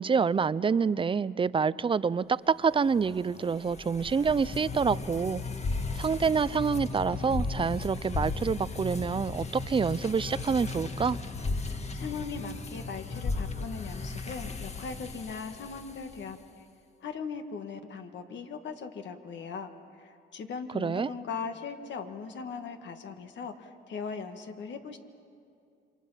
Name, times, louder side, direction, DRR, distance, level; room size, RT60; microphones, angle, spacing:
voice 1, 0.0-5.4 6.0-11.2 20.7-21.1, right 5 dB, 25° right, 18 dB, 0.5 m, -27 dB
sound 1, 2.9-16.3, left 3 dB, 35° left, 1.5 m, -36 dB
voice 2, 11.9-16.7 17.0-19.7 20.0-25.0, left 5 dB, 65° left, 6 dB, 1.8 m, -39 dB
28.0 x 24.0 x 5.7 m, 2.5 s
cardioid pair, 90°, 20 cm